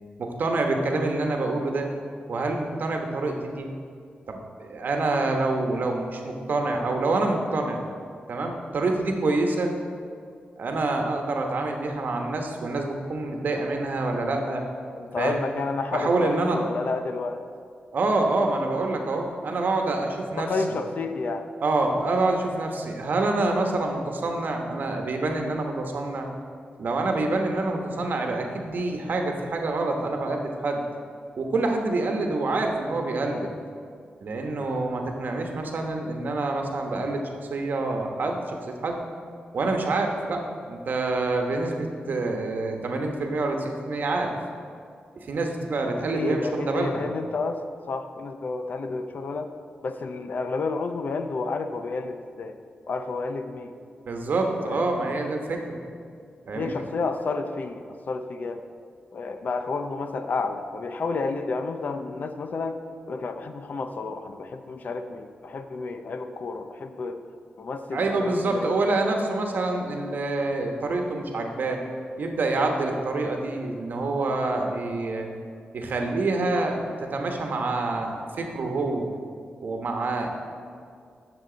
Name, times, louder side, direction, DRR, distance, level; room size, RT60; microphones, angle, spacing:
voice 1, 0.2-1.9 2.3-3.7 4.3-7.8 8.3-9.7 10.6-14.6 15.2-15.4 15.9-16.6 17.9-20.5 21.6-26.3 26.8-30.8 31.4-33.5 34.2-37.2 37.5-38.6 38.8-39.0 39.5-44.3 45.2-47.1 54.1-55.8 56.5-56.7 67.9-71.8 72.2-75.3 75.7-76.8 77.1-79.1 79.6-80.3, right 2 dB, 65° right, 3 dB, 1.0 m, -26 dB
voice 2, 15.0-17.4 20.4-21.5 33.3-33.6 45.9-49.5 49.8-52.6 52.9-53.7 54.6-54.9 56.5-58.7 59.1-62.8 63.1-67.2 67.6-68.7, left 3 dB, 55° left, 8 dB, 0.5 m, -31 dB
10.0 x 6.7 x 3.9 m, 2.3 s
wide cardioid pair, 105°, 3 cm